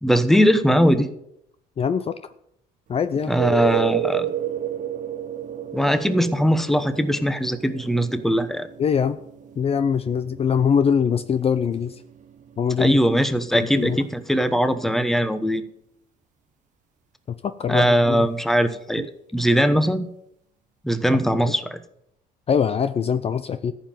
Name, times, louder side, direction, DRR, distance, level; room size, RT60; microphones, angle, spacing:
voice 1, 0.0-1.1 3.3-4.3 5.7-8.7 12.8-15.6 17.7-19.1 19.3-20.1 20.8-21.8, equal, ahead, 10 dB, 1.1 m, -20 dB
voice 2, 1.8-2.2 2.9-3.3 8.8-9.2 9.6-12.0 12.6-13.0 13.5-14.0 17.4-18.3 21.5-21.6 22.5-23.7, left 7 dB, 35° left, 12 dB, 0.6 m, -23 dB
sound 1, 3.2-14.7 19.0-19.1, right 11 dB, 45° right, 0.7 m, -32 dB
14.5 x 5.7 x 9.2 m, 0.76 s
cardioid pair, 110°, 17 cm